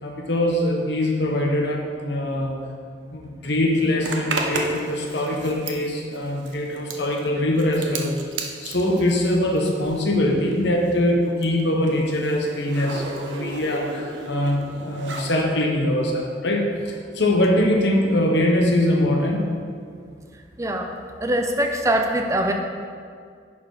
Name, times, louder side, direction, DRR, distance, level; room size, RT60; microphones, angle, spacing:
voice 1, 0.0-2.6 3.1-19.4, left 1 dB, 65° left, 1 dB, 1.1 m, -22 dB
Zipper (clothing), 4.0-10.2 10.5-15.4, right 3 dB, 75° right, 0.9 m, -34 dB
voice 2, 20.6-20.9 21.2-22.5, right 1 dB, 15° right, 4 dB, 0.5 m, -23 dB
11.0 x 4.4 x 4.8 m, 2.1 s
head